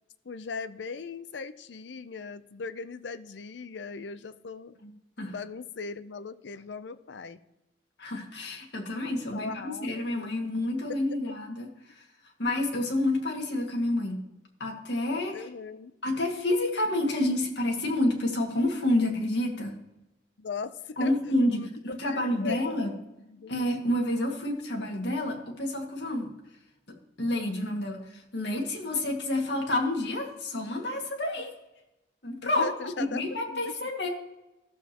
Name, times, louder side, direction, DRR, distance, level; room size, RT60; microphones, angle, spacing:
voice 1, 0.2-4.8 5.3-7.4 9.3-10.4 15.3-15.9 20.4-21.1 21.5-23.6 32.4-33.2 33.5-33.7, left 4 dB, 90° left, 13 dB, 0.6 m, -39 dB
voice 2, 8.0-12.1 12.4-14.2 14.6-15.5 16.0-19.8 21.0-22.9 23.5-26.3 26.9-31.5 32.2-32.7 33.0-34.1, left 1 dB, 75° left, 1 dB, 2.0 m, -29 dB
14.5 x 7.1 x 3.0 m, 0.95 s
head